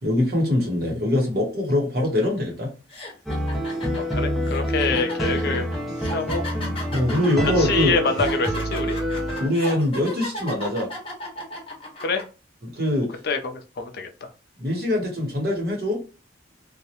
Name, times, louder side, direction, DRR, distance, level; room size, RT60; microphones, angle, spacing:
voice 1, 0.0-2.7 6.9-7.9 9.4-10.9 12.6-13.1 14.6-16.0, left 1 dB, 55° right, -1 dB, 1.1 m, -23 dB
sound 1, 2.2-2.4 2.9-12.2, left 1 dB, 30° left, 0.9 m, -35 dB
sound 2, 3.3-9.5, equal, ahead, 0.4 m, -27 dB
voice 2, 4.0-5.7 6.1-6.4 7.6-9.0 12.0-12.2 13.2-14.3, left 4 dB, 55° left, 6 dB, 0.4 m, -26 dB
2.3 x 2.1 x 2.9 m, 0.32 s
head